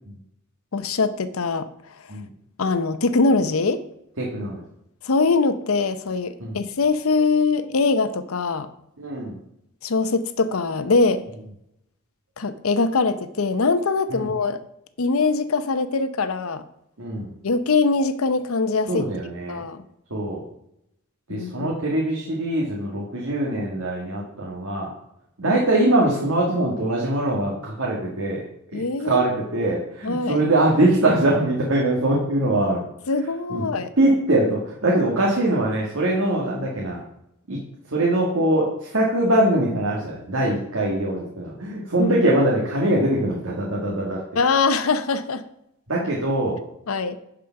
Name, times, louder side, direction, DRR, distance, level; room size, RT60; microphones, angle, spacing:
voice 1, 0.7-1.7 2.6-3.8 5.0-8.7 9.8-11.2 12.4-14.6 15.0-16.6 17.4-19.1 19.5-19.8 21.3-21.7 28.7-29.8 30.0-30.4 33.1-33.9 42.0-42.1 44.3-45.4 46.9-47.2, left 4 dB, 80° left, 12 dB, 0.7 m, -22 dB
voice 2, 4.2-4.6 6.4-6.6 9.0-9.3 14.1-14.3 17.0-17.3 18.9-19.6 20.1-20.4 21.3-24.9 25.4-28.4 28.7-32.8 33.5-33.6 34.0-37.0 37.5-37.6 37.9-44.2 45.9-46.6, right 1 dB, 80° right, -3 dB, 1.9 m, -22 dB
10.5 x 5.1 x 5.8 m, 0.78 s
head